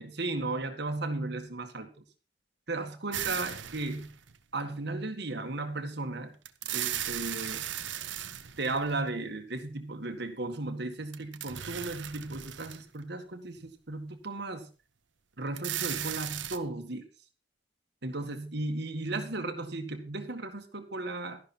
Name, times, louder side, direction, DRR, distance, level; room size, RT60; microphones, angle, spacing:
voice 1, 0.0-1.9 2.7-4.1 4.5-6.3 6.7-7.7 8.6-14.7 15.4-17.0 18.0-21.4, right 2 dB, 60° right, 6 dB, 1.8 m, -35 dB
sound 1, 3.1-4.4 6.4-9.1 11.1-13.0 13.6-13.7 15.5-16.6, right 11 dB, 80° right, 1.1 m, -36 dB
12.5 x 11.0 x 4.4 m, 0.34 s
head